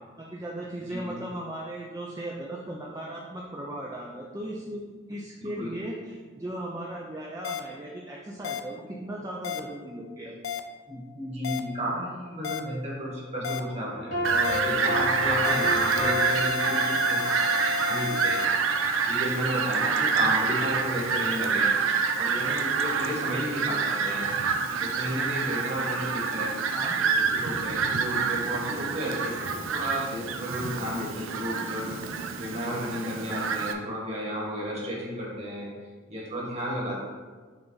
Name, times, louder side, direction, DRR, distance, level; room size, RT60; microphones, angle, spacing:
voice 1, 0.2-4.8 5.1-10.4 15.5-15.7 26.7-27.0 33.7-33.8, right 1 dB, 15° right, -3 dB, 0.5 m, -37 dB
sound 1, 7.4-7.6 8.4-8.6 9.4-9.6 10.4-10.6 11.4-11.6 12.4-12.6 13.4-13.6 14.4-14.6 15.4-18.5, left 6 dB, 80° left, 0.4 m, -32 dB
voice 2, 10.9-17.2 17.9-24.3 24.8-26.5 27.0-31.9 32.4-35.7 36.1-37.0, equal, 35° right, -4 dB, 1.7 m, -33 dB
sound 2, 13.9-18.1, left 2 dB, 55° left, 1.1 m, -32 dB
Fowl, 14.2-33.7, right 5 dB, 80° right, 0.5 m, -27 dB
7.0 x 3.4 x 4.0 m, 1.4 s
head